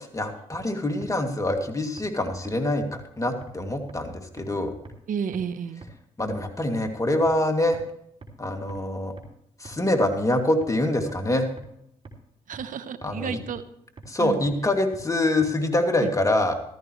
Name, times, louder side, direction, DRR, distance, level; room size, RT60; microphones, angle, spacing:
voice 1, 0.1-4.7 6.2-7.8 8.4-9.1 9.6-11.5 13.0-13.4 14.1-16.5, left 1 dB, 20° left, 4 dB, 2.6 m, -25 dB
sound 1, 0.5-0.6 1.0-1.1 1.5-1.6 2.0-2.1 2.5-2.6 2.9-3.0 3.4-3.5 3.9-4.0 4.4-4.5 4.9-5.0 5.3-5.4 5.8-5.9 6.3-6.4 6.8-6.9 7.3-7.4 7.7-7.8 8.2-8.3 8.7-8.8 9.2-9.3 9.7-9.8 10.1-10.2 10.6-10.7 11.1-11.2 11.6-11.7 12.1-12.2 12.5-12.6 13.0-13.1 13.5-13.6 14.0-14.1 14.5-14.6 14.9-15.0 15.4-15.5, right 3 dB, 40° right, 2.9 m, -42 dB
voice 2, 0.7-1.0 5.1-5.8 12.5-13.6 14.2-14.5 16.0-16.1, right 7 dB, 65° right, 12 dB, 1.1 m, -32 dB
14.5 x 13.5 x 3.2 m, 0.76 s
supercardioid pair, 55°, 15 cm